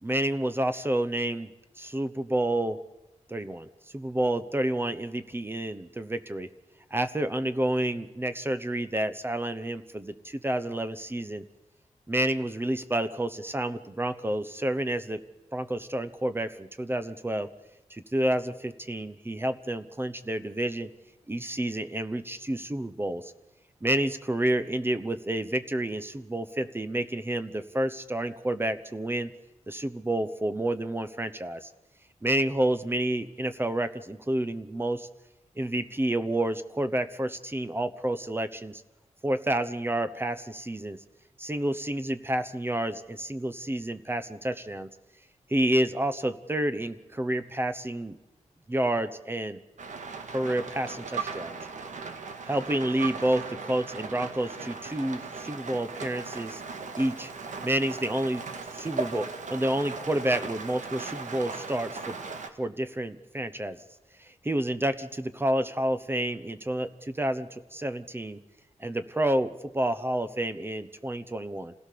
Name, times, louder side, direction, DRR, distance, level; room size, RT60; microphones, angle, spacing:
voice 1, 0.0-1.5 1.8-2.8 3.3-3.7 3.9-6.5 6.9-11.5 12.1-15.2 15.5-17.5 17.9-20.9 21.3-23.3 23.8-29.3 29.7-31.7 32.2-35.1 35.6-38.8 39.2-41.0 41.4-44.9 45.5-48.1 48.7-49.6 50.3-51.6 52.5-56.6 57.0-57.3 57.6-58.4 58.7-62.2 62.6-63.8 64.2-68.4 68.8-71.7, right 1 dB, 20° right, 11 dB, 0.9 m, -29 dB
Rain, 49.8-62.5, right 4 dB, 90° right, 2.0 m, -38 dB
27.0 x 16.5 x 6.8 m, 1.0 s
wide cardioid pair, 140°, 12 cm